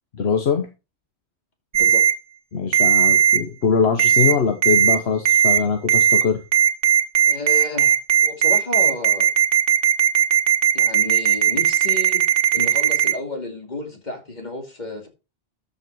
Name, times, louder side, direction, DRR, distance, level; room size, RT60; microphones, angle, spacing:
voice 1, 0.1-0.7 2.5-6.4, left 6 dB, 70° left, 1.3 m, -22 dB
voice 2, 1.7-2.0 7.3-7.9 8.2-9.3 10.7-12.2 12.5-15.1, left 2 dB, 40° left, 2.7 m, -31 dB
Ringtone, 1.7-2.1 2.7-3.4 4.0-4.3 4.6-5.0 5.3-5.6 5.9-6.2 6.5-13.1, right 9 dB, 55° right, 1.5 m, -16 dB
13.0 x 5.6 x 4.6 m
omnidirectional pair, 1.1 m